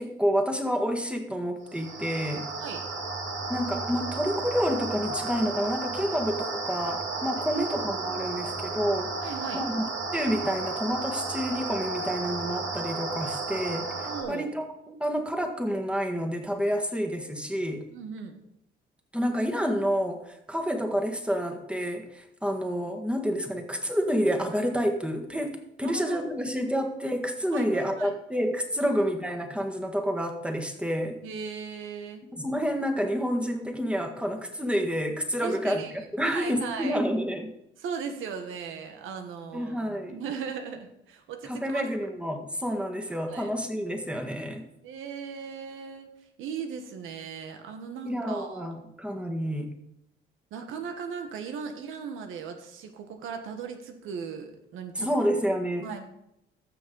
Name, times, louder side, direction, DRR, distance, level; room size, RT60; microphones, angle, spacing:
voice 1, 0.0-2.5 3.5-9.1 9.5-9.8 10.1-17.8 19.1-31.2 32.3-37.5 39.5-40.2 41.5-44.6 48.0-49.7 54.9-55.9, equal, 5° right, 3 dB, 1.7 m, -29 dB
sound 1, 1.6-14.2, right 3 dB, 70° right, 2.5 m, -33 dB
voice 2, 9.2-9.6 14.0-14.5 17.9-18.4 25.8-26.3 27.5-28.2 28.8-29.0 31.2-32.2 35.4-37.0 37.8-39.8 40.1-41.8 43.0-43.5 44.8-46.1 46.4-48.7 50.5-55.1 55.8-56.0, right 6 dB, 90° right, 6 dB, 1.4 m, -38 dB
14.5 x 6.2 x 4.0 m, 0.82 s
cardioid pair, 90°, 20 cm